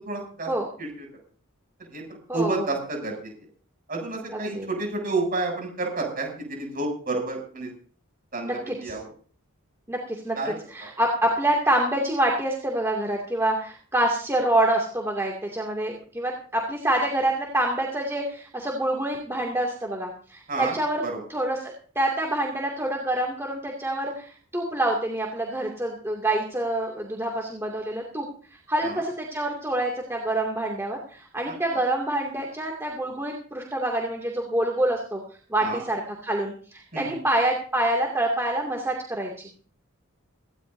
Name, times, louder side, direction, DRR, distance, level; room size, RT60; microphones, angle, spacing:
voice 1, 0.1-0.5 0.8-1.1 1.9-2.0 2.3-3.3 3.9-7.7 8.3-9.0 10.3-10.5 20.5-20.7 21.0-21.2 28.8-29.0 31.5-31.8 35.6-35.8 36.9-37.2, right 3 dB, 45° right, 2 dB, 7.5 m, -30 dB
voice 2, 2.3-2.7 4.3-4.7 8.4-8.9 9.9-10.4 10.7-21.0 21.3-28.3 28.7-35.2 35.5-39.5, right 1 dB, 10° right, -1 dB, 2.4 m, -26 dB
18.5 x 16.5 x 2.7 m, 0.43 s
head